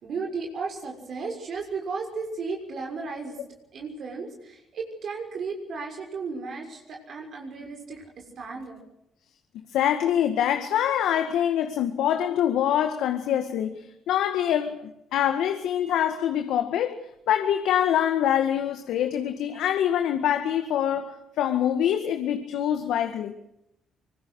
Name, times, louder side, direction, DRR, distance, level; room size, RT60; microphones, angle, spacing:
voice 1, 0.0-3.4 3.7-8.0 8.4-8.8, right 4 dB, 60° right, 6.4 m, -34 dB
voice 2, 9.7-23.3, left 10 dB, 85° left, 1.9 m, -25 dB
25.0 x 21.0 x 6.5 m
cardioid pair, 90°, 0 cm